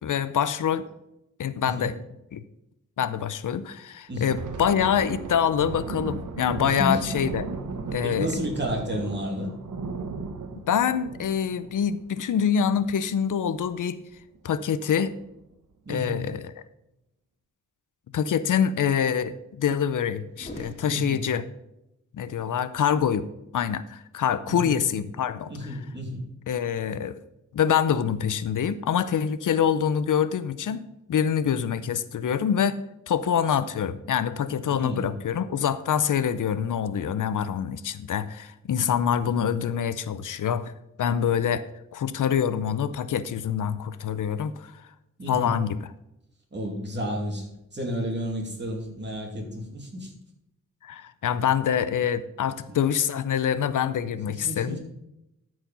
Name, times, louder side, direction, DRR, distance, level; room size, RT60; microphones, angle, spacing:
voice 1, 0.0-0.9 1.4-2.0 2.3-2.4 3.0-7.5 7.9-8.3 10.7-14.0 14.4-15.2 15.9-16.5 18.1-21.4 22.1-23.3 23.5-25.5 26.5-27.2 27.5-30.8 31.1-32.8 33.1-40.7 41.0-41.6 41.9-44.8 45.3-45.9 50.8-54.8, left 8 dB, 90° left, 14 dB, 0.6 m, -25 dB
Thunder, 4.1-13.2 13.5-13.7 14.1-14.4 15.0-15.5, right 4 dB, 80° right, 1.1 m, -36 dB
voice 2, 6.6-7.0 8.0-9.5 15.8-16.2 20.9-21.2 24.5-24.8 25.5-26.2 34.8-35.1 45.2-45.6 46.5-50.1 52.7-52.8 54.3-54.8, equal, 35° right, 0 dB, 2.7 m, -31 dB
sound 1, 20.3-21.6, equal, 20° left, 2.7 m, -43 dB
13.0 x 4.9 x 5.5 m, 0.87 s
wide cardioid pair, 115°, 30 cm